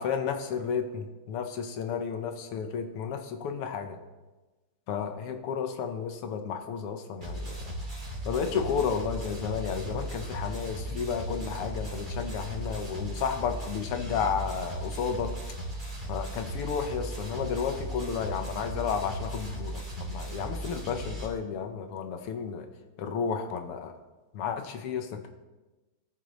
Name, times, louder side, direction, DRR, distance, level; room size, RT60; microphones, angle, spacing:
voice 1, 0.0-4.0 4.9-7.6 8.3-15.3 16.1-22.7 23.0-23.9 24.3-25.3, left 6 dB, 90° left, 6 dB, 1.9 m, -32 dB
sound 1, 7.2-21.3, right 1 dB, 20° right, 2.6 m, -37 dB
18.0 x 6.7 x 3.1 m, 1.2 s
omnidirectional pair, 2.4 m